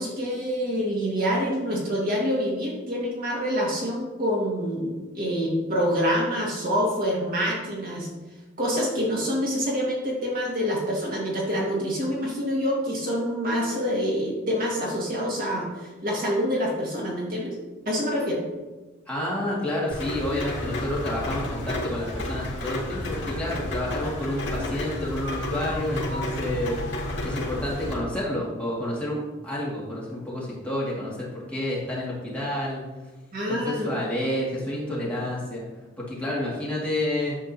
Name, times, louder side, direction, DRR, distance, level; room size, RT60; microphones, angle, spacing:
voice 1, 0.0-8.1 8.6-17.6 17.9-18.4 33.3-33.9, equal, 45° right, -4 dB, 2.0 m, -26 dB
voice 2, 19.1-26.8 27.2-32.8 33.5-35.6 36.0-37.4, left 1 dB, 5° left, -7 dB, 2.2 m, -29 dB
Rain, 19.9-27.9, left 1 dB, 70° left, 2.0 m, -31 dB
10.0 x 7.3 x 2.9 m, 1.2 s
head